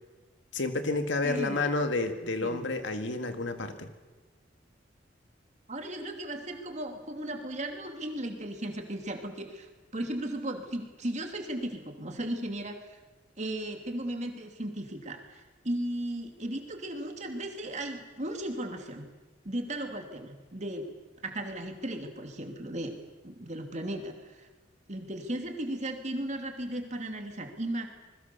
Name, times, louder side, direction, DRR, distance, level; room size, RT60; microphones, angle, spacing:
voice 1, 0.5-3.9, left 3 dB, 75° left, 7 dB, 2.0 m, -30 dB
voice 2, 1.2-1.7 2.4-2.7 5.7-13.0 13.4-19.1 19.4-20.9 21.2-22.9 23.2-24.5 24.9-27.9, right 1 dB, 40° right, 4 dB, 2.6 m, -36 dB
26.5 x 21.0 x 6.9 m, 1.2 s
head